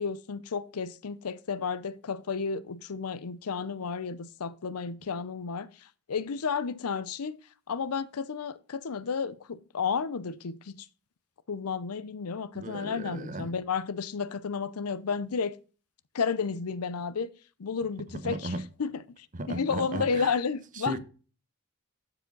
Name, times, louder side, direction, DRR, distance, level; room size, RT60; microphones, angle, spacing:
voice 1, 0.0-5.7 6.1-7.4 7.7-10.9 11.5-15.6 16.1-17.3 17.6-18.5 18.8-21.0, left 5 dB, 85° left, 0.6 m, -32 dB
voice 2, 12.5-13.5 18.2-18.7 19.3-20.4 20.7-21.0, right 2 dB, 35° right, 0.9 m, -36 dB
12.0 x 4.9 x 3.9 m
head